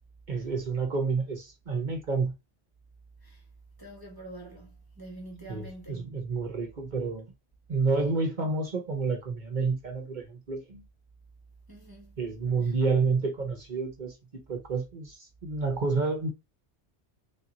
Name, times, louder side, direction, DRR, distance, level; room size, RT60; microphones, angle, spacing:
voice 1, 0.3-2.3 5.5-7.3 7.7-10.8 12.2-16.3, right 4 dB, 45° right, 0.8 m, -29 dB
voice 2, 3.8-6.3 11.7-12.2 12.6-12.7, right 2 dB, 20° right, 1.0 m, -46 dB
3.5 x 2.9 x 3.8 m
omnidirectional pair, 1.2 m